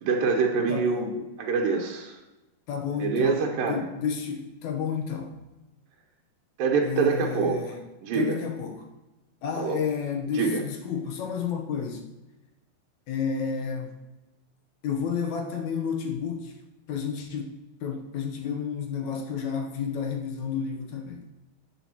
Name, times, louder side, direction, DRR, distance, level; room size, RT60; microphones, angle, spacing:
voice 1, 0.0-2.2 3.0-3.9 6.6-7.6 8.0-8.4 9.6-9.8 10.3-10.6, right 5 dB, 90° right, 0 dB, 2.6 m, -25 dB
voice 2, 0.7-1.2 2.7-5.3 6.8-7.9 8.1-8.9 9.4-12.1 13.1-13.9 14.8-16.5 16.9-17.5 17.8-21.2, left 6 dB, 70° left, 3 dB, 2.1 m, -31 dB
13.0 x 8.3 x 2.9 m, 1.0 s
omnidirectional pair, 3.9 m